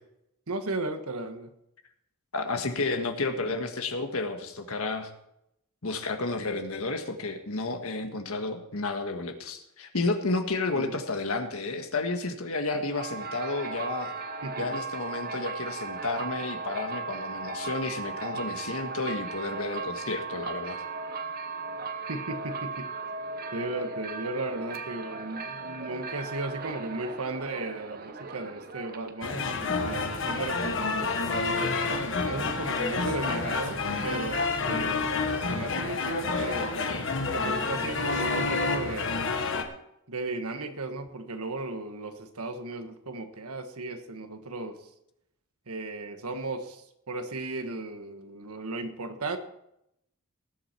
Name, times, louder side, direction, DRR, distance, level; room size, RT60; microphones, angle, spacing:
voice 1, 0.5-1.5 10.7-10.9 14.4-14.7 22.1-22.9 23.5-31.7 32.2-36.7 37.3-39.4 40.1-44.8 45.7-49.4, right 2 dB, 80° right, 7 dB, 1.4 m, -35 dB
voice 2, 2.3-5.1 5.8-14.1 14.6-20.8, left 3 dB, 70° left, 6 dB, 1.6 m, -31 dB
sound 1, 12.9-29.3, right 4 dB, 40° right, 0.9 m, -37 dB
sound 2, 29.2-39.6, left 3 dB, 55° left, 1.4 m, -29 dB
19.0 x 8.0 x 4.4 m, 0.80 s
head